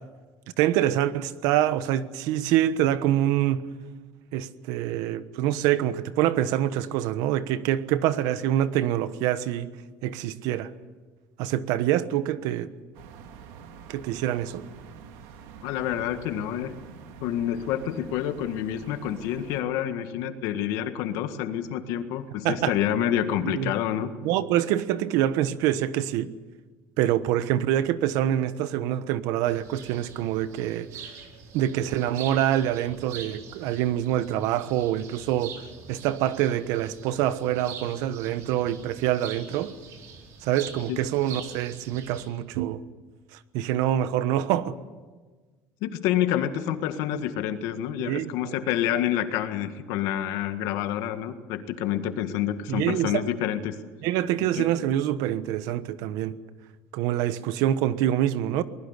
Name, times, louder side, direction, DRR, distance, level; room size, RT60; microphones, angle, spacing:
voice 1, 0.6-3.6 4.3-9.7 10.0-10.7 11.4-12.7 13.9-14.7 22.4-22.8 23.4-23.7 24.2-26.3 27.0-30.9 31.5-35.5 35.9-39.7 40.4-42.8 43.5-44.7 48.0-48.3 52.7-53.2 54.0-56.4 56.9-58.6, right 12 dB, 70° right, 1.1 m, -25 dB
sound 1, 12.9-19.6, right 6 dB, 85° right, 2.3 m, -46 dB
voice 2, 15.6-16.7 17.2-24.1 40.9-41.0 45.8-53.8 54.4-54.7, left 11 dB, 70° left, 1.8 m, -28 dB
sound 2, 29.5-42.2, right 6 dB, 50° right, 4.4 m, -44 dB
22.5 x 20.5 x 8.2 m
cardioid pair, 175°, 6 cm